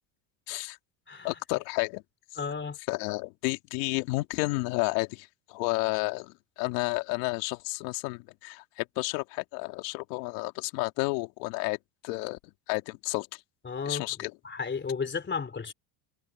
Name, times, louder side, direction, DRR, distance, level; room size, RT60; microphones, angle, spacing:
voice 1, 0.5-0.8 1.2-2.0 2.9-11.8 12.0-12.4 12.7-13.4 13.9-14.3, left 25 dB, 80° left, 2.4 m, -31 dB
voice 2, 2.4-2.8 13.6-14.0 14.4-15.7, left 5 dB, 20° left, 3.4 m, -33 dB
supercardioid pair, 100°, 49 cm